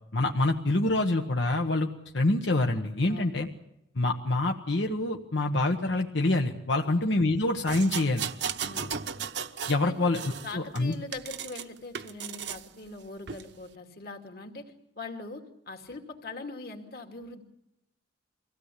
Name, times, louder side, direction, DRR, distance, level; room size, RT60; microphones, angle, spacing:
voice 1, 0.1-1.9 2.1-3.5 4.0-8.3 9.7-10.9, left 2 dB, 85° left, 3 dB, 1.3 m, -26 dB
voice 2, 3.1-3.4 6.8-7.0 8.6-8.9 9.8-9.9 10.4-17.4, left 3 dB, 55° left, 4 dB, 2.5 m, -42 dB
sound 1, 7.7-9.8 10.1-11.6 11.9-12.6 13.3-13.4, right 7 dB, 70° right, 0.9 m, -35 dB
24.0 x 16.5 x 8.4 m, 0.87 s
head